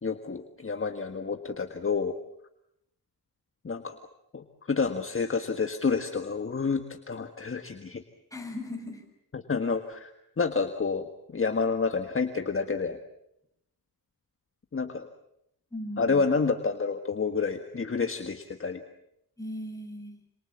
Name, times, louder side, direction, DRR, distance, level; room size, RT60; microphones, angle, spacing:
voice 1, 0.0-2.2 3.6-4.0 4.3-8.0 9.3-11.0 11.3-13.0 14.7-15.1 16.0-18.8, left 4 dB, 35° left, 7 dB, 1.6 m, -29 dB
voice 2, 8.3-9.0 15.7-16.3 19.4-20.1, left 1 dB, 10° left, 1 dB, 7.9 m, -38 dB
27.5 x 27.0 x 7.3 m, 0.77 s
wide cardioid pair, 110°, 38 cm